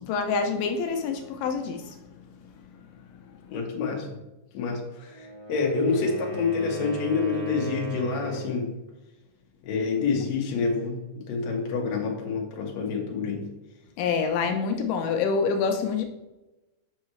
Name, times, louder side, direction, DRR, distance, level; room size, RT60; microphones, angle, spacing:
voice 1, 0.0-2.0 14.0-16.1, left 5 dB, 85° left, 6 dB, 2.2 m, -26 dB
voice 2, 3.5-4.1 4.5-8.7 9.6-13.5, left 4 dB, 65° left, 0 dB, 2.0 m, -27 dB
Wind instrument woodwind instrument, 5.1-8.7, right 2 dB, 25° right, 1.3 m, -37 dB
5.6 x 5.4 x 3.1 m, 1.0 s
omnidirectional pair, 3.8 m